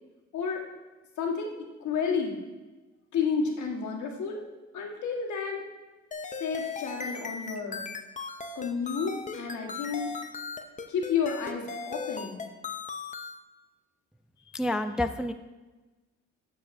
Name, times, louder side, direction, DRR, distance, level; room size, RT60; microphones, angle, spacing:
voice 1, 1.2-1.5 1.8-2.4 3.1-4.4 4.7-5.7 6.4-7.9 8.5-10.1 10.9-12.4, left 6 dB, 75° left, 0 dB, 1.6 m, -31 dB
sound 1, 6.1-13.4, left 5 dB, 25° left, 0.7 m, -37 dB
voice 2, 14.5-15.3, left 1 dB, 5° right, 8 dB, 0.3 m, -28 dB
11.5 x 7.2 x 2.7 m, 1.2 s
cardioid pair, 90°, 30 cm